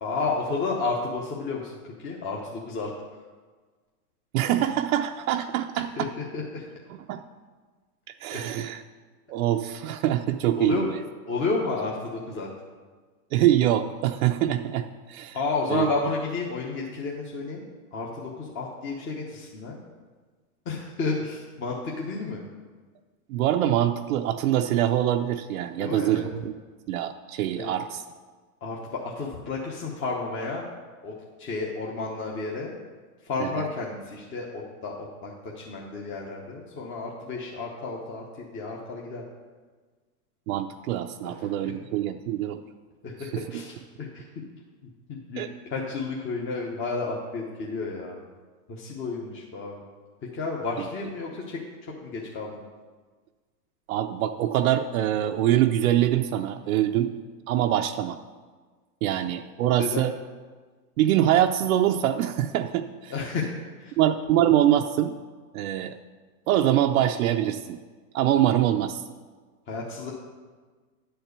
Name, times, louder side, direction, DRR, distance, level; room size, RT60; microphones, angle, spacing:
voice 1, 0.0-1.7 2.0-2.9 6.0-6.7 8.3-8.4 10.6-10.9 11.3-12.5 15.3-17.6 17.9-19.7 20.7-22.4 25.8-26.3 27.5-27.7 28.6-30.6 31.0-32.7 33.2-39.2 41.2-41.7 43.0-44.2 45.1-45.4 45.7-48.2 48.7-49.8 50.3-52.6 59.8-60.1 63.1-63.5 63.8-64.0 69.7-70.1, left 3 dB, 25° left, -2 dB, 1.0 m, -31 dB
voice 2, 4.3-5.9 7.1-7.2 8.2-8.8 9.3-11.0 13.3-15.4 15.7-15.9 23.3-26.6 26.9-28.0 33.4-33.7 40.5-42.6 43.3-43.6 45.4-45.5 53.9-57.1 57.5-58.2 59.0-60.1 61.0-63.1 64.0-65.2 65.5-66.0 66.5-67.8 68.1-69.0, right 12 dB, 65° right, 5 dB, 0.6 m, -24 dB
10.0 x 4.5 x 6.7 m, 1.4 s
hypercardioid pair, 135°, 46 cm